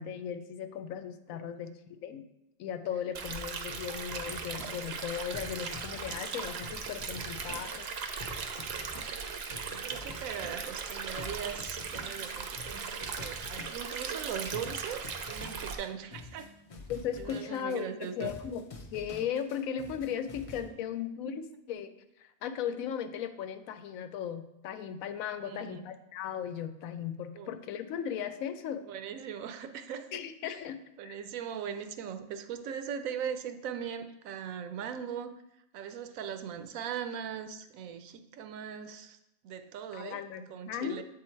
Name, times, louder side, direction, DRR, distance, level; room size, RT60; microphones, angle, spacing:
voice 1, 0.0-2.3 2.6-7.9 16.9-21.9 22.2-28.8 30.1-30.8 31.0-31.2 39.9-41.0, left 8 dB, 80° left, 10 dB, 1.0 m, -37 dB
Stream, 3.1-15.7, right 5 dB, 60° right, 0.8 m, -38 dB
sound 1, 3.7-20.7, left 2 dB, 45° left, 0.4 m, -47 dB
voice 2, 9.7-16.5 17.2-18.3 25.4-25.8 27.4-27.5 28.8-30.5 31.0-35.4 35.7-39.2 39.4-40.2 40.5-41.0, right 8 dB, 80° right, 9 dB, 1.0 m, -40 dB
7.7 x 3.8 x 4.4 m, 0.87 s
omnidirectional pair, 1.4 m